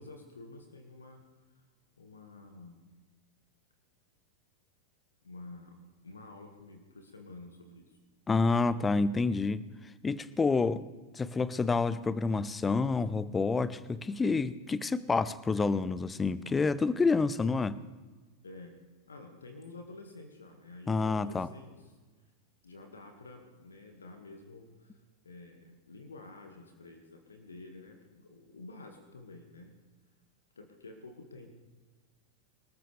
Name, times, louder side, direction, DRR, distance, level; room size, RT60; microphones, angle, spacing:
voice 1, 0.0-1.6 2.0-2.8 5.2-8.0 18.4-18.7 19.1-21.9 22.6-29.8 30.6-31.5, left 2 dB, 75° left, 4 dB, 1.9 m, -50 dB
voice 2, 8.3-9.6 10.0-10.8 11.1-17.8 20.9-21.5, left 4 dB, 15° left, 18 dB, 0.6 m, -28 dB
26.0 x 13.5 x 3.4 m, 1.3 s
figure-of-eight pair, 90°, 0 cm